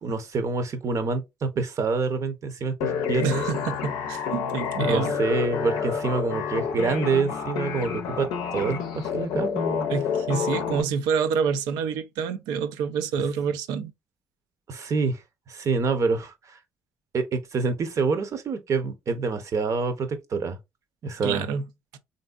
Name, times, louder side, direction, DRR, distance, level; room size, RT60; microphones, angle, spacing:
voice 1, 0.0-3.4 4.8-9.9 14.7-15.2 15.5-16.6 17.1-20.6 21.0-21.5, right 4 dB, 55° right, 0.7 m, -27 dB
sound 1, 2.8-10.8, left 7 dB, 80° left, 0.5 m, -29 dB
voice 2, 3.2-5.2 9.9-13.9 21.2-21.7, right 6 dB, 80° right, 0.4 m, -27 dB
3.3 x 2.6 x 2.3 m
hypercardioid pair, 55°, 7 cm